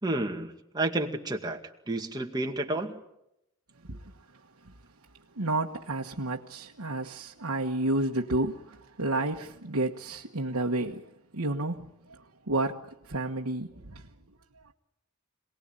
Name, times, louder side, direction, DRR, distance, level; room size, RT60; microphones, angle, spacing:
voice 1, 0.0-1.6 1.9-3.0, right 2 dB, 20° right, 2.2 m, -30 dB
voice 2, 3.8-4.1 4.6-4.7 5.3-14.1 14.6-14.7, right 2 dB, 70° right, 1.4 m, -31 dB
27.0 x 19.5 x 9.0 m
head